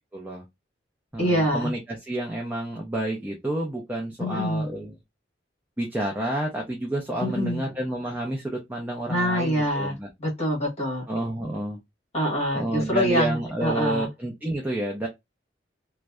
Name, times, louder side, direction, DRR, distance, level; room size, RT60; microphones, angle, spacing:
voice 1, 0.1-0.4 1.1-4.9 5.8-10.1 11.1-11.8 12.5-15.1, right 1 dB, 10° right, 0.4 m, -29 dB
voice 2, 1.2-1.7 4.2-4.7 7.2-7.6 9.1-11.0 12.1-14.1, equal, 35° left, 1.2 m, -25 dB
2.6 x 2.1 x 2.2 m
head